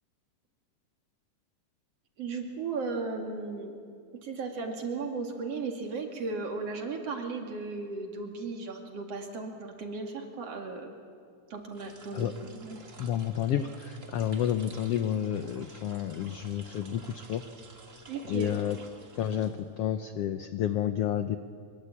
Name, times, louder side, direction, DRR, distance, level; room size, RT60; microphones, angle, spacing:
voice 1, 2.2-3.8 4.2-10.9 11.5-12.8 18.1-18.5, right 4 dB, 50° right, 3 dB, 3.2 m, -36 dB
sound 1, 11.6-20.0, right 3 dB, 30° right, 1.8 m, -51 dB
voice 2, 13.0-17.5 18.3-18.8 19.2-21.4, left 10 dB, 80° left, 10 dB, 1.3 m, -30 dB
23.5 x 22.5 x 8.6 m, 2.3 s
omnidirectional pair, 3.7 m